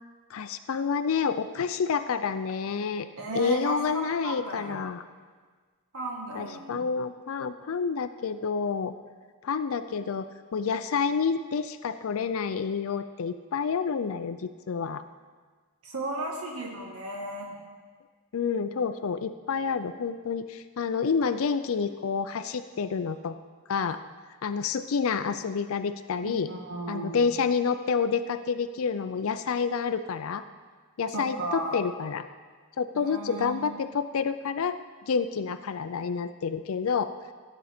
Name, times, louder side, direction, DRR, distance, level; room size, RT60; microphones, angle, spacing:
voice 1, 0.3-3.1 3.3-5.0 6.3-8.9 9.4-15.0 18.3-23.4 23.7-24.0 24.4-26.5 26.9-30.4 31.0-32.3 32.8-34.8 35.1-37.1, left 5 dB, 70° left, 11 dB, 0.4 m, -29 dB
voice 2, 3.2-4.8 5.9-6.9 15.8-17.6 26.2-27.2 31.1-31.8 32.9-33.7, right 1 dB, 75° right, -1 dB, 1.4 m, -35 dB
16.0 x 8.1 x 4.3 m, 1.5 s
head